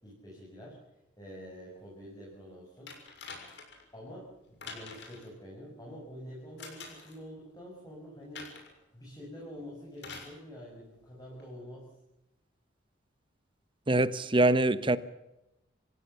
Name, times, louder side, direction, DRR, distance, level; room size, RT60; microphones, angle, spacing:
voice 1, 0.0-0.8 1.2-3.1 3.9-8.5 8.9-11.9, equal, 20° left, -3 dB, 6.9 m, -47 dB
sound 1, 2.9-3.8 4.6-5.3 6.6-7.2 8.3-8.8 10.0-10.4 11.4-11.5, left 4 dB, 65° left, 6.7 m, -45 dB
voice 2, 13.9-15.0, right 2 dB, 25° right, 15 dB, 1.0 m, -24 dB
27.0 x 16.5 x 6.9 m, 0.91 s
head